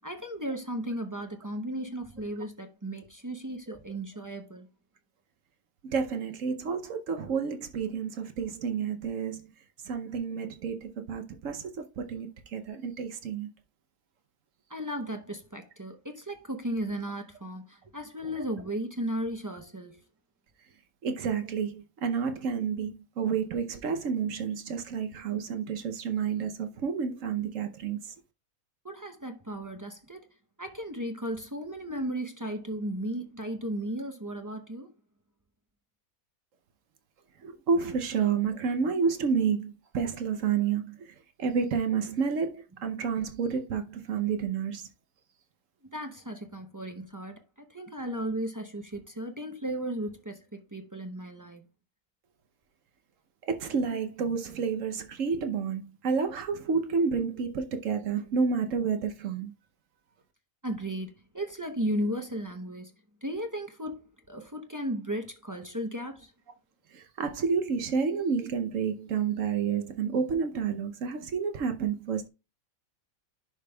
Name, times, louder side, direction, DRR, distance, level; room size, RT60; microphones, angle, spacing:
voice 1, 0.0-4.7 14.7-20.0 28.8-30.3 30.6-34.9 45.9-47.4 47.7-51.7 60.6-62.9 63.2-64.0 64.3-66.3, right 1 dB, 25° right, 0.4 m, -35 dB
voice 2, 5.8-9.5 9.9-13.5 21.0-28.0 37.4-41.1 41.4-44.9 53.5-59.5 66.9-72.3, right 6 dB, 65° right, 1.1 m, -30 dB
11.0 x 5.1 x 2.3 m
omnidirectional pair, 1.5 m